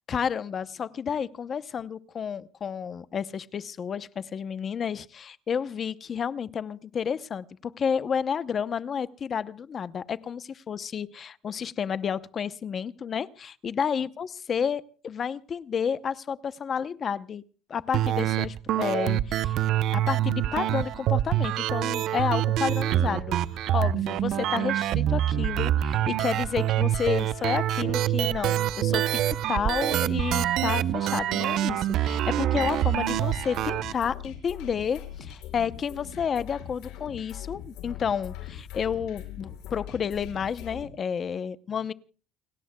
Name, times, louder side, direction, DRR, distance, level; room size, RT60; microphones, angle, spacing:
voice 1, 0.1-17.4 17.7-19.6 19.9-23.4 23.7-41.9, left 7 dB, 35° left, 0.8 m, -31 dB
sound 1, 17.9-33.9, right 12 dB, 55° right, 0.7 m, -26 dB
sound 2, 32.5-40.9, left 10 dB, 80° left, 5.7 m, -41 dB
30.0 x 17.0 x 2.3 m
cardioid pair, 155°, 0 cm